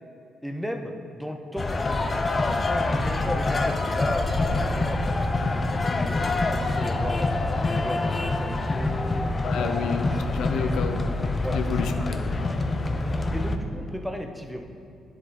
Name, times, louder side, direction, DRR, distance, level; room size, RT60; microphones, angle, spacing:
voice 1, 0.4-7.3 7.6-9.2 9.6-10.0 10.4-11.2 11.4-11.9 13.3-14.7, equal, ahead, 4 dB, 0.8 m, -36 dB
sound 1, 1.6-13.6, left 2 dB, 30° left, 0.6 m, -26 dB
voice 2, 9.4-11.0 11.5-12.6, left 5 dB, 80° left, 6 dB, 0.7 m, -30 dB
10.0 x 7.9 x 4.2 m, 2.7 s
cardioid pair, 90°, 0 cm